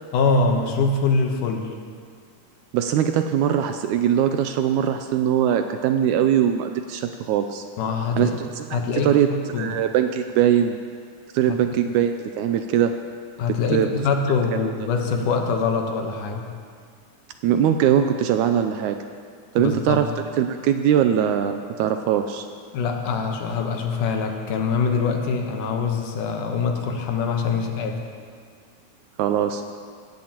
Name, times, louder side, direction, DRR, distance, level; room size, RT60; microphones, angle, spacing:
voice 1, 0.1-1.8 7.8-8.4 8.7-9.2 9.5-9.7 11.5-11.6 13.4-16.5 19.6-20.1 22.7-28.0, left 4 dB, 75° left, 3 dB, 2.6 m, -24 dB
voice 2, 2.7-7.6 8.2-9.3 9.5-10.8 11.3-12.9 13.5-13.9 17.4-19.0 19.5-22.5 29.2-29.6, right 9 dB, 80° right, 7 dB, 1.8 m, -21 dB
18.0 x 14.5 x 2.9 m, 2.1 s
omnidirectional pair, 3.7 m